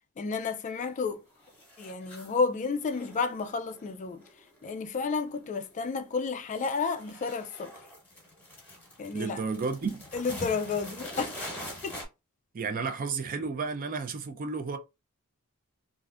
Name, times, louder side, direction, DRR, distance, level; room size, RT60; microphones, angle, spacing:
voice 1, 0.2-1.2 1.8-4.2 4.6-7.7 9.0-9.4 10.1-11.3 11.8-12.0, left 4 dB, 35° left, 0.3 m, -31 dB
sound 1, 0.7-1.1 1.4-2.4 2.8-5.0 5.3-5.7 6.0-12.1, left 1 dB, 10° left, 1.1 m, -44 dB
voice 2, 9.1-10.0 12.5-14.8, right 4 dB, 40° right, 0.4 m, -32 dB
3.3 x 2.5 x 2.4 m
head